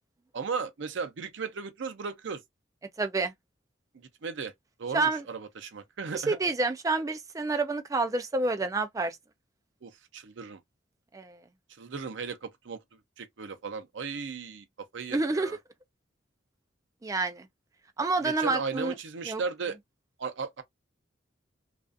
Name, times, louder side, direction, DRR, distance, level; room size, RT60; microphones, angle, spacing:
voice 1, 0.3-2.4 3.9-4.5 4.8-6.4 9.8-10.6 11.8-12.8 13.2-14.6 14.9-15.6 18.2-19.8 20.2-20.6, right 5 dB, 70° right, 0.5 m, -36 dB
voice 2, 3.0-3.3 4.9-5.2 6.1-9.2 11.1-11.4 15.1-15.5 17.0-17.5 18.0-19.0 19.2-19.4, right 3 dB, 20° right, 0.4 m, -28 dB
2.4 x 2.4 x 2.4 m
head